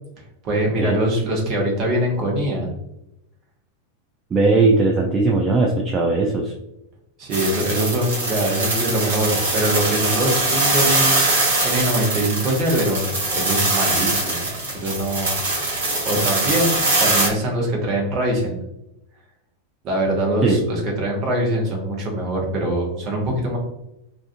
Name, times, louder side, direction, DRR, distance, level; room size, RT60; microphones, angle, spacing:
voice 1, 0.4-2.7 7.2-11.1 11.6-14.5 14.7-15.3 15.7-18.6 19.8-23.6, right 1 dB, 35° right, -1 dB, 0.8 m, -23 dB
voice 2, 4.3-6.5 20.4-20.7, right 3 dB, 20° right, -1 dB, 0.3 m, -18 dB
sound 1, 7.3-17.3, right 2 dB, 65° right, 0.9 m, -22 dB
2.4 x 2.4 x 2.4 m, 0.86 s
figure-of-eight pair, 90°, 0 cm